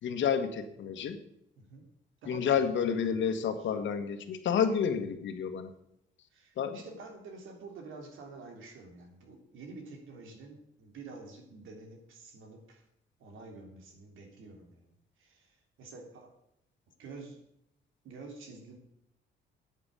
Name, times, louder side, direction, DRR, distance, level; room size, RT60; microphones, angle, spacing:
voice 1, 0.0-1.2 2.3-5.7 6.6-6.8, left 7 dB, 70° left, 8 dB, 1.6 m, -30 dB
voice 2, 2.2-2.7 3.0-3.7 6.3-12.8 13.2-16.3 17.0-17.4 18.0-18.8, right 3 dB, 80° right, 3 dB, 3.3 m, -49 dB
9.2 x 9.0 x 8.4 m, 0.78 s
cardioid pair, 90°, 20 cm